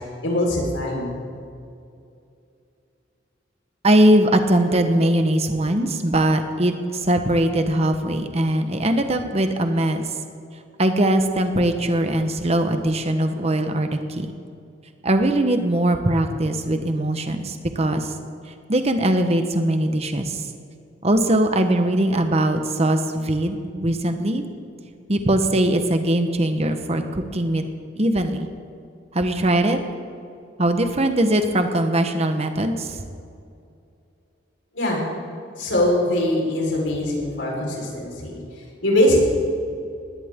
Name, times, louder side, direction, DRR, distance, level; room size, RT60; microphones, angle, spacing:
voice 1, 0.2-1.2 34.7-35.0 35.6-38.4 38.8-39.3, left 1 dB, 85° left, -2 dB, 4.5 m, -22 dB
voice 2, 3.8-10.0 10.8-14.3 15.0-18.1 18.7-20.4 21.0-24.4 25.1-27.6 28.0-28.5 29.1-29.8 30.6-33.0, right 1 dB, 35° right, 7 dB, 1.1 m, -21 dB
20.0 x 16.5 x 3.7 m, 2.5 s
head